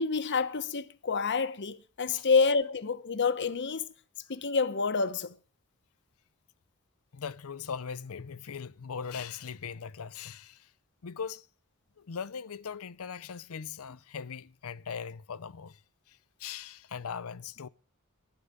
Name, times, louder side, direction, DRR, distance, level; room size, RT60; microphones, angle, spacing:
voice 1, 0.0-3.9 4.3-5.4, left 4 dB, 55° left, 1.0 m, -28 dB
voice 2, 7.1-10.7 11.0-11.5 12.0-15.8 16.1-17.7, left 6 dB, 70° left, 0.6 m, -40 dB
11.5 x 11.0 x 6.6 m
head